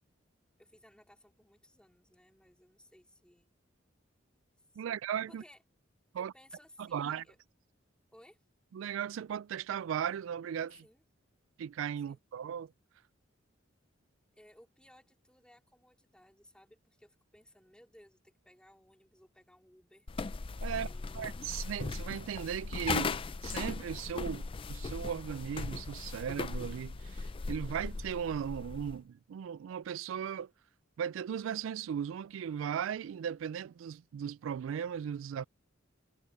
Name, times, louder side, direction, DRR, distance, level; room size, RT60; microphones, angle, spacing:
voice 1, 0.6-3.5 4.7-5.0 5.3-5.6 6.2-7.4 8.1-8.4 10.8-11.0 12.1-12.2 14.3-20.1 20.7-21.3, left 1 dB, 5° left, 3.5 m, -60 dB
voice 2, 4.8-5.4 6.1-6.3 6.8-7.2 8.7-10.8 11.6-12.7 20.6-20.9 21.1-30.5 31.0-35.4, right 8 dB, 75° right, 0.3 m, -37 dB
sound 1, 20.1-29.0, left 4 dB, 25° left, 0.4 m, -38 dB
head